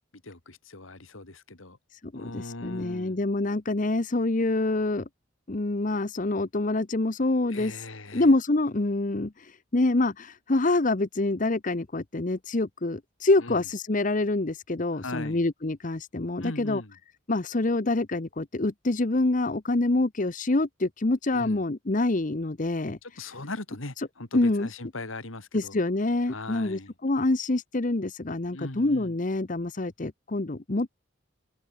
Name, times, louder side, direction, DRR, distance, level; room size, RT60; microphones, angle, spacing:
voice 1, 0.2-1.8 2.1-3.2 7.5-8.3 13.4-13.7 14.9-15.4 16.4-17.0 21.3-21.6 23.0-25.8 26.3-26.9 28.5-29.1, left 2 dB, 85° left, 2.8 m, -39 dB
voice 2, 2.1-5.1 5.5-7.8 8.1-16.8 17.3-23.0 24.3-24.7 25.5-30.9, left 2 dB, 40° left, 0.9 m, -26 dB
open air
head